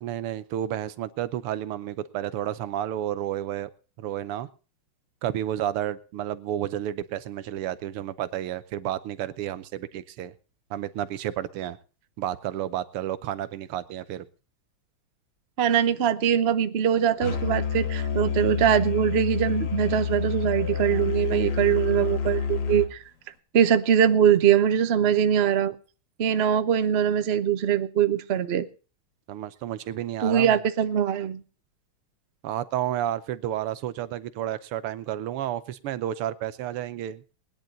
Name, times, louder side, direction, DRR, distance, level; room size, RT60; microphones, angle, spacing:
voice 1, 0.0-3.7 4.0-4.5 5.2-10.3 10.7-11.8 12.2-14.3 29.3-30.6 32.4-37.2, right 12 dB, 85° right, 15 dB, 1.8 m, -31 dB
voice 2, 15.6-23.0 23.5-25.7 26.2-28.7 30.2-31.4, right 9 dB, 55° right, 12 dB, 0.6 m, -22 dB
Musical instrument, 17.2-22.9, left 7 dB, 85° left, 2.7 m, -28 dB
20.0 x 10.5 x 3.9 m, 0.36 s
omnidirectional pair, 2.4 m